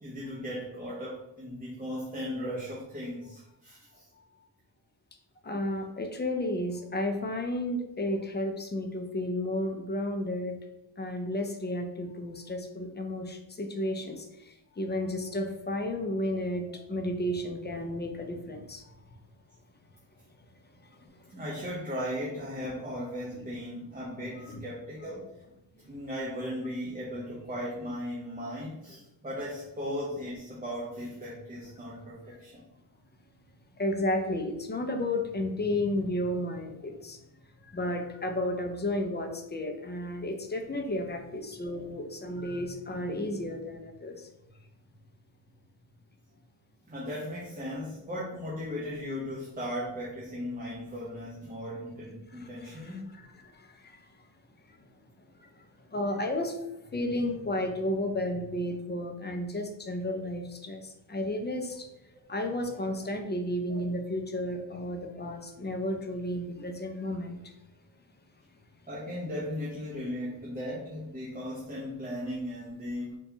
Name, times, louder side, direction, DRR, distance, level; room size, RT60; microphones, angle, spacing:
voice 1, 0.0-4.1 16.7-16.8 21.3-25.3 25.9-32.6 46.9-53.1 68.9-73.2, equal, 20° right, -5 dB, 0.6 m, -37 dB
voice 2, 5.4-10.6 11.0-19.0 20.8-21.3 23.3-23.6 24.4-24.6 33.7-37.2 37.6-44.3 52.3-54.1 54.7-54.8 55.4-61.9 62.3-67.5, left 1 dB, 25° left, 4 dB, 0.4 m, -33 dB
4.0 x 2.3 x 2.7 m, 0.88 s
wide cardioid pair, 125°, 46 cm